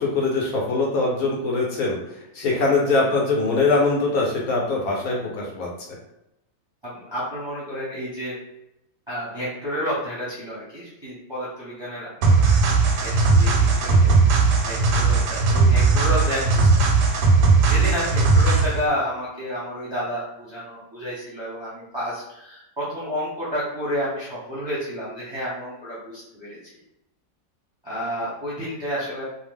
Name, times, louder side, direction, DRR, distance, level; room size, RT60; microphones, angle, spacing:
voice 1, 0.0-2.0 2.3-5.7, left 3 dB, 70° left, -2 dB, 1.1 m, -22 dB
voice 2, 6.8-8.3 9.1-12.6 13.0-16.9 17.5-26.6 27.8-29.2, equal, 25° right, -9 dB, 0.6 m, -30 dB
sound 1, 12.2-18.8, right 4 dB, 90° right, 1.2 m, -18 dB
2.8 x 2.0 x 3.4 m, 0.85 s
omnidirectional pair, 1.8 m